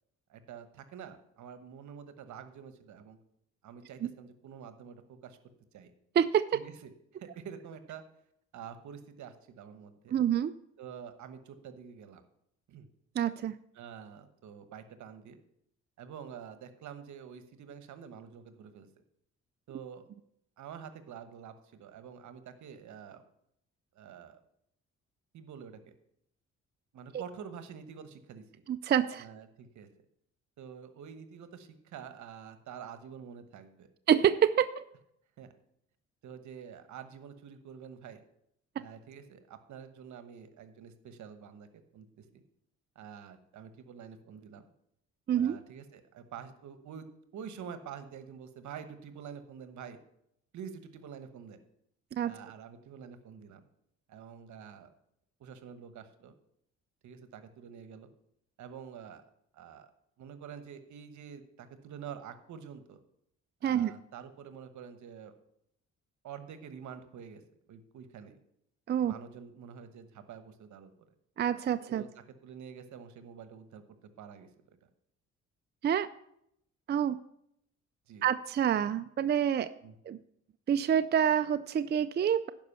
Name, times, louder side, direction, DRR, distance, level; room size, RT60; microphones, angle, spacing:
voice 1, 0.3-3.2 3.6-5.4 5.7-5.9 6.5-6.9 7.2-8.0 8.5-10.2 10.8-12.2 12.7-12.9 13.7-15.4 16.0-19.0 19.7-20.1 20.6-23.2 23.9-24.4 25.3-25.9 26.9-28.6 29.2-29.9 30.6-33.9 35.4-35.5 36.2-38.2 38.8-41.7 41.9-42.4 42.9-44.7 45.3-47.1 47.3-50.0 50.5-51.6 52.2-53.6 54.1-54.9 55.4-56.4 57.0-58.1 58.6-59.2 59.5-59.9 60.2-63.0 63.6-65.3 66.2-67.4 67.7-68.4 69.0-71.1 71.9-73.8 74.2-74.5 78.1-78.3 79.8-79.9, right 7 dB, 75° right, 10 dB, 1.1 m, -47 dB
voice 2, 6.2-6.6 10.1-10.5 13.2-13.5 28.7-29.2 34.1-34.8 45.3-45.6 52.2-52.4 63.6-63.9 68.9-69.1 71.4-72.0 75.8-76.1 76.9-77.2 78.2-79.7 80.1-80.2 80.7-82.5, right 9 dB, 35° right, 11 dB, 0.4 m, -27 dB
11.0 x 5.3 x 6.9 m, 0.74 s
cardioid pair, 90°, 30 cm